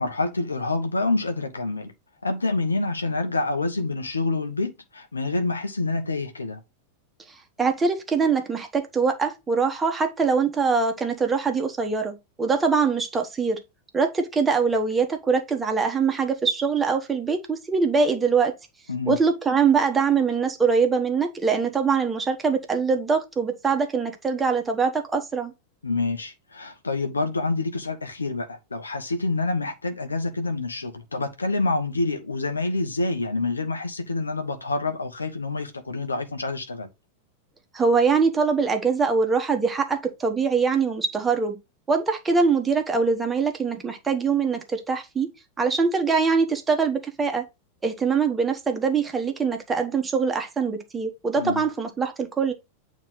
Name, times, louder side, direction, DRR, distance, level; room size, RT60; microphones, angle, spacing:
voice 1, 0.0-1.9 2.2-6.6 18.9-19.2 25.8-36.9 51.4-51.6, left 3 dB, 75° left, 0.9 m, -27 dB
voice 2, 7.6-13.6 13.9-18.5 19.1-25.5 37.7-41.6 41.9-45.3 45.6-47.4 47.8-52.5, right 5 dB, 15° right, 1.1 m, -23 dB
8.8 x 3.0 x 4.0 m
figure-of-eight pair, 90°, 0 cm